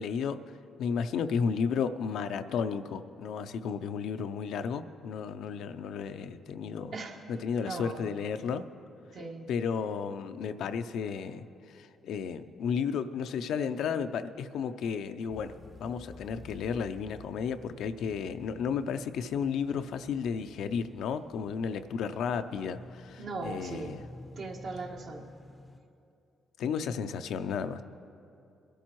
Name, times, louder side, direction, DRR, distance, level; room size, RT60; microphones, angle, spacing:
voice 1, 0.0-6.9 7.3-8.7 9.5-15.5 15.8-24.0 26.6-27.8, left 6 dB, 75° left, 10 dB, 0.5 m, -33 dB
voice 2, 7.6-8.1 9.1-9.5 23.2-23.9 24.4-25.3, right 3 dB, 65° right, 0 dB, 1.5 m, -38 dB
sound 1, 15.3-25.8, left 2 dB, 25° left, 0.5 m, -51 dB
21.5 x 11.5 x 3.0 m, 2.6 s
cardioid pair, 90°, 0 cm